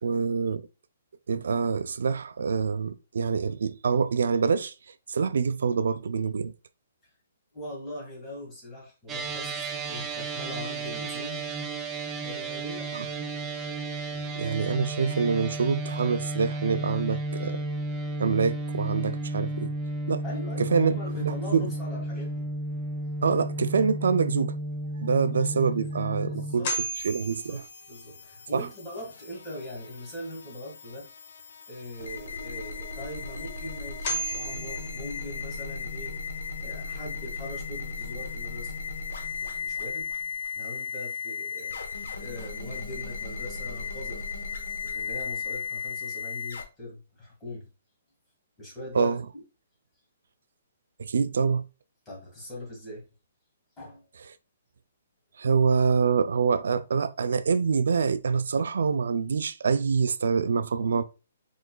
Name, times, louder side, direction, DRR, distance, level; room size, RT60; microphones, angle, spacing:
voice 1, 0.0-0.6 1.3-4.7 5.1-6.5 12.9-13.1 14.4-17.6 18.2-19.7 20.1-20.2 20.6-21.7 23.2-24.6 25.0-26.7 27.0-27.6 28.5-28.7 48.9-49.2 51.0-51.6 55.4-61.0, right 5 dB, 75° right, 0.3 m, -25 dB
voice 2, 7.5-11.5 12.2-12.9 14.1-14.3 20.2-22.5 26.3-26.7 27.3-31.1 31.7-36.2 36.6-38.7 39.4-40.1 40.5-41.8 42.2-44.3 44.8-47.7 48.6-49.1 52.0-53.1 53.8-54.0, left 1 dB, 10° left, 1.7 m, -41 dB
sound 1, 9.1-26.6, right 2 dB, 10° right, 0.4 m, -33 dB
sound 2, 25.8-25.9 26.6-28.3 33.4-33.5 34.0-35.7, right 1 dB, 35° left, 1.1 m, -34 dB
sound 3, 27.0-46.6, left 5 dB, 80° left, 0.9 m, -36 dB
4.9 x 3.8 x 2.2 m
hypercardioid pair, 170°, 0 cm